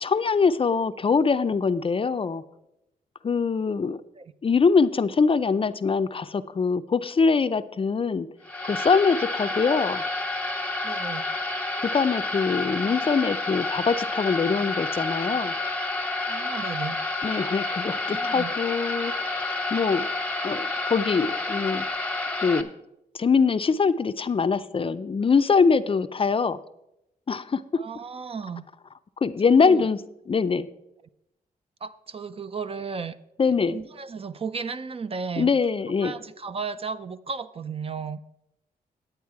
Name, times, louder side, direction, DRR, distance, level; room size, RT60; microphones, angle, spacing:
voice 1, 0.0-2.4 3.2-4.0 4.4-8.3 8.7-10.0 11.8-15.5 17.2-20.1 20.4-21.9 22.4-22.7 23.1-26.6 27.3-27.6 29.2-30.0 30.3-30.7 33.4-33.8 35.4-36.1, left 5 dB, 35° left, 12 dB, 0.5 m, -23 dB
sound 1, 8.4-22.6, left 2 dB, 10° left, 0.8 m, -29 dB
voice 2, 10.8-11.2 16.3-17.0 18.1-18.5 27.8-28.6 29.4-29.9 31.8-33.2 33.7-35.5 36.0-38.2, right 5 dB, 35° right, 13 dB, 0.5 m, -34 dB
10.0 x 8.9 x 4.7 m, 0.85 s
cardioid pair, 90°, 16 cm